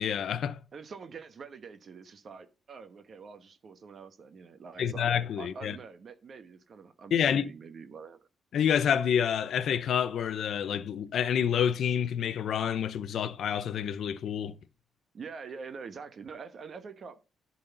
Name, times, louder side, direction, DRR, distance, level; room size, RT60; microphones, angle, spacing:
voice 1, 0.0-0.6 4.8-5.8 7.1-7.5 8.5-14.5, left 8 dB, 70° left, 0.6 m, -28 dB
voice 2, 0.7-5.1 5.4-8.2 15.1-17.2, right 5 dB, 55° right, 1.1 m, -45 dB
10.5 x 4.1 x 5.5 m
cardioid pair, 85°, 0 cm